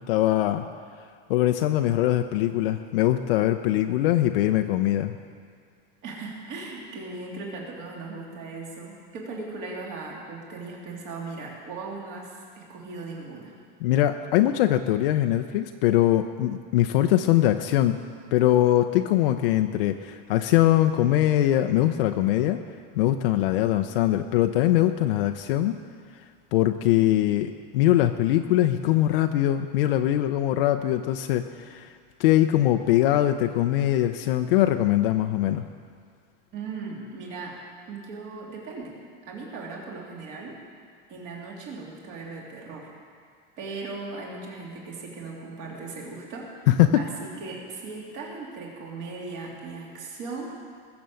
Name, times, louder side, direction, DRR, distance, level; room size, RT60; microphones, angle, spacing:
voice 1, 0.1-0.7 1.3-5.1 13.8-18.0 18.3-22.6 22.9-25.8 26.5-31.9 32.2-35.6 46.7-47.0, left 13 dB, 70° left, 6 dB, 0.7 m, -22 dB
voice 2, 6.0-13.5 36.5-37.6 37.9-39.0 39.3-40.6 41.1-42.9 43.6-46.7 46.9-50.5, right 3 dB, 40° right, -2 dB, 3.0 m, -38 dB
21.0 x 7.0 x 7.7 m, 2.2 s
supercardioid pair, 180°, 29 cm